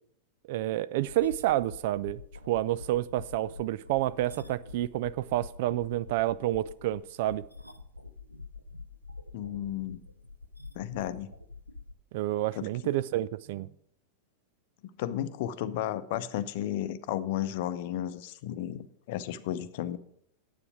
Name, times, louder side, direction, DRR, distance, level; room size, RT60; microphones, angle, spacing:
voice 1, 0.5-7.4 12.1-13.7, right 14 dB, 50° right, 0.4 m, -29 dB
sound 1, 1.1-11.9, left 3 dB, 90° left, 0.6 m, -47 dB
voice 2, 9.3-10.0 10.7-11.4 12.5-12.7 15.0-20.0, left 11 dB, 50° left, 0.6 m, -33 dB
9.7 x 8.2 x 6.1 m
figure-of-eight pair, 90°, 0 cm